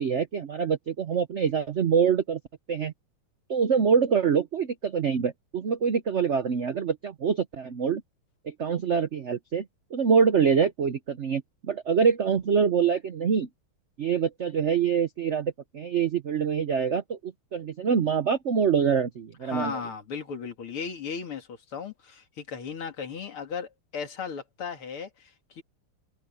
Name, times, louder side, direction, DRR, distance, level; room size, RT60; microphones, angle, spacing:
voice 1, 0.0-2.4 2.7-2.9 3.5-8.0 8.4-9.7 9.9-13.5 14.0-19.8, right 6 dB, 70° right, 0.6 m, -25 dB
voice 2, 19.4-25.6, left 6 dB, 85° left, 3.2 m, -36 dB
omnidirectional pair, 2.3 m